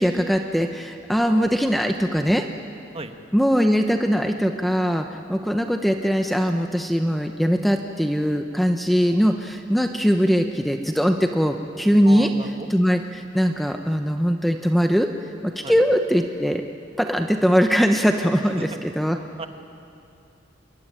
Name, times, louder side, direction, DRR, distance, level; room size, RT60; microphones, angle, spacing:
voice 1, 0.0-2.4 3.3-12.3 12.7-15.1 15.4-16.6 17.0-19.2, equal, ahead, 5 dB, 0.9 m, -21 dB
voice 2, 12.0-12.7 15.6-15.8 18.4-18.8 19.4-19.5, right 2 dB, 30° right, 6 dB, 1.5 m, -35 dB
27.0 x 22.0 x 10.0 m, 2.6 s
head